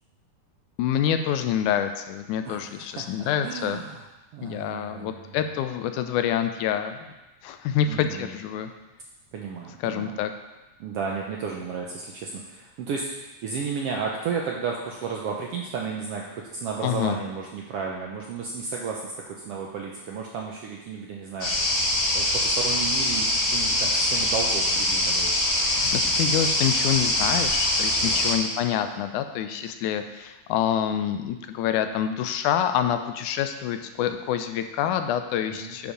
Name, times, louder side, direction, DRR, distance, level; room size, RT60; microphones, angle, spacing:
voice 1, 0.8-3.8 4.4-7.1 7.4-8.7 9.8-10.3 16.8-17.2 25.7-35.9, left 9 dB, 85° left, 8 dB, 2.0 m, -27 dB
voice 2, 2.4-4.0 4.3-5.4 7.9-8.4 9.3-10.2 10.8-21.5 22.1-25.4 28.0-28.4 35.4-35.8, right 5 dB, 75° right, -1 dB, 1.4 m, -33 dB
sound 1, 21.4-28.3, left 1 dB, 40° left, 0.8 m, -23 dB
9.6 x 5.2 x 5.0 m, 1.1 s
omnidirectional pair, 3.5 m